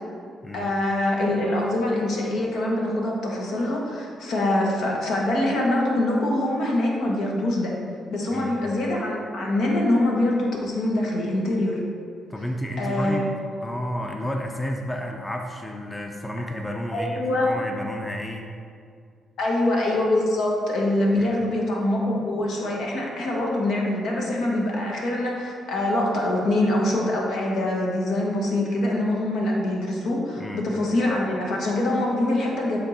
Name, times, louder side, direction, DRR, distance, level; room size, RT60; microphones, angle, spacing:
voice 1, 0.5-7.7 8.1-11.8 12.8-13.3 16.9-17.5 19.4-32.8, left 1 dB, 75° left, -2 dB, 1.4 m, -24 dB
voice 2, 12.3-13.2 13.6-18.4 21.2-21.4 30.4-30.6, equal, 10° left, 2 dB, 0.6 m, -31 dB
8.7 x 3.6 x 4.2 m, 2.3 s
cardioid pair, 90°, 0 cm